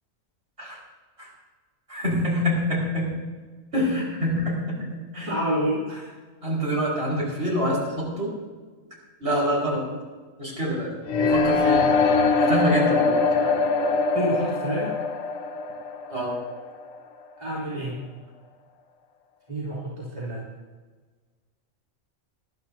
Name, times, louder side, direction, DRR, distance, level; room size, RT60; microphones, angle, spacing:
voice 1, 1.9-3.1 3.7-5.3 6.4-8.3 9.2-9.8 10.4-10.9 11.3-11.9 12.4-13.6 16.1-16.4, equal, 55° right, -5 dB, 5.2 m, -26 dB
voice 2, 5.3-6.1 14.1-14.9 17.4-18.0 19.5-20.5, right 1 dB, 30° right, -9 dB, 3.2 m, -28 dB
sound 1, 11.1-17.0, left 4 dB, 80° left, 1.2 m, -22 dB
20.5 x 13.0 x 2.8 m, 1.4 s
omnidirectional pair, 1.4 m